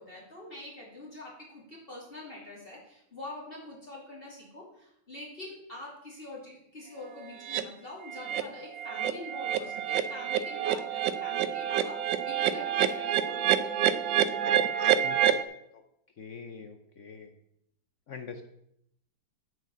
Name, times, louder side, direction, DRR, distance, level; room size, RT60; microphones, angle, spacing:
voice 1, 0.0-13.9, left 2 dB, 25° left, -5 dB, 2.9 m, -45 dB
sound 1, 7.4-7.6 8.1-8.4 8.7-15.4, right 10 dB, 70° right, 1.3 m, -27 dB
voice 2, 15.0-15.4 15.7-15.8 16.2-17.3 18.1-18.5, left 5 dB, 60° left, 7 dB, 0.8 m, -44 dB
9.0 x 6.4 x 7.1 m, 0.75 s
omnidirectional pair, 2.2 m